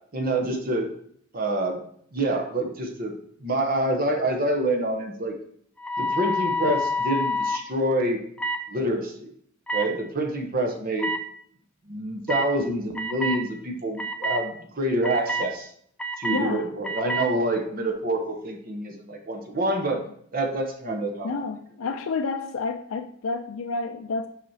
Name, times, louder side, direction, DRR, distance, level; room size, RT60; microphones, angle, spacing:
voice 1, 0.1-0.9 1.3-1.8 2.1-3.1 3.4-5.3 6.0-8.2 8.7-9.3 9.7-11.1 11.9-15.7 16.2-20.0 20.3-21.3, right 1 dB, 45° right, 3 dB, 0.8 m, -27 dB
sound 1, 5.8-7.6 8.4-8.6 9.7-9.9 11.0-11.2 12.3-12.5 13.0-13.4 14.0-14.4 15.0-15.5 16.0-16.4 16.8-17.3, left 1 dB, 5° left, 0.3 m, -27 dB
voice 2, 16.3-16.7 21.2-24.3, left 4 dB, 75° left, 5 dB, 0.4 m, -29 dB
5.9 x 5.7 x 2.8 m, 0.63 s
head